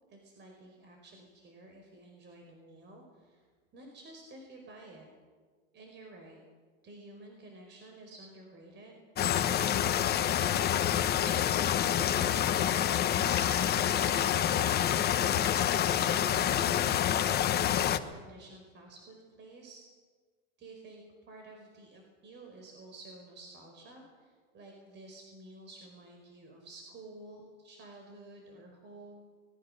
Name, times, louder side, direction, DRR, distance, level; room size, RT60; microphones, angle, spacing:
voice 1, 0.1-3.5 3.7-5.1 5.7-6.4 6.8-9.0 9.3-19.8 20.6-29.3, right 2 dB, 35° right, 2 dB, 5.1 m, -51 dB
sound 1, 9.2-18.0, left 10 dB, 30° left, 1.2 m, -27 dB
24.5 x 20.0 x 6.8 m, 1.5 s
supercardioid pair, 125°, 31 cm